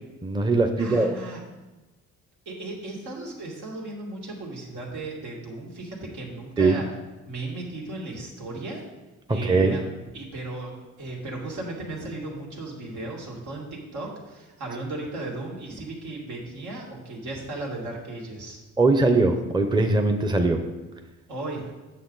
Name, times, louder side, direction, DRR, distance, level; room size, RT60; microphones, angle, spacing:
voice 1, 0.2-1.1 6.6-6.8 9.4-9.8 18.8-20.6, right 3 dB, 15° right, 6 dB, 0.7 m, -21 dB
voice 2, 0.8-1.4 2.5-6.9 7.3-8.8 9.3-9.8 10.1-18.6 21.3-21.7, right 2 dB, 80° right, -3 dB, 2.3 m, -36 dB
8.4 x 6.7 x 4.0 m, 1.1 s
cardioid pair, 90°, 30 cm